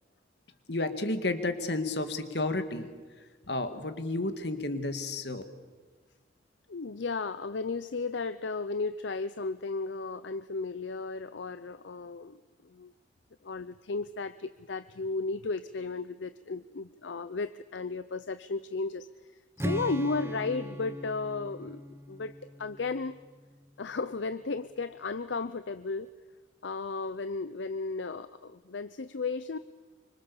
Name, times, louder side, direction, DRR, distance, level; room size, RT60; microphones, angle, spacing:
voice 1, 0.7-2.9 3.5-5.4, left 2 dB, 65° left, 9 dB, 2.1 m, -31 dB
voice 2, 6.7-12.4 12.6-12.9 13.4-19.1 19.6-21.8 22.1-23.2 23.8-26.1 26.6-29.6, left 3 dB, 80° left, 14 dB, 0.6 m, -34 dB
Strum, 19.6-23.7, equal, 15° right, 0.9 m, -39 dB
25.5 x 25.0 x 7.1 m, 1.4 s
head